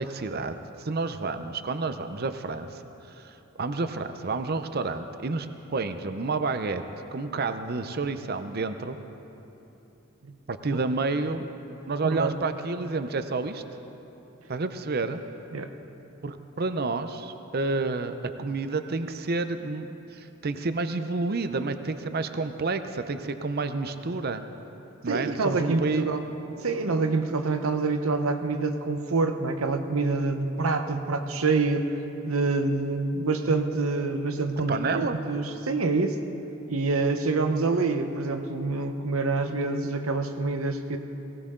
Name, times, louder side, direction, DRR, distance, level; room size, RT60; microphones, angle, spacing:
voice 1, 0.0-2.8 3.2-6.8 7.1-9.0 10.5-11.5 11.9-13.6 14.5-15.2 16.2-24.4 25.0-26.1 34.5-35.2, right 3 dB, 50° right, 9 dB, 0.6 m, -30 dB
voice 2, 12.0-12.3 15.5-15.7 25.1-26.2 26.6-31.9 32.2-36.2 36.7-41.0, right 3 dB, 90° right, 7 dB, 0.9 m, -26 dB
18.5 x 18.5 x 3.8 m, 3.0 s
head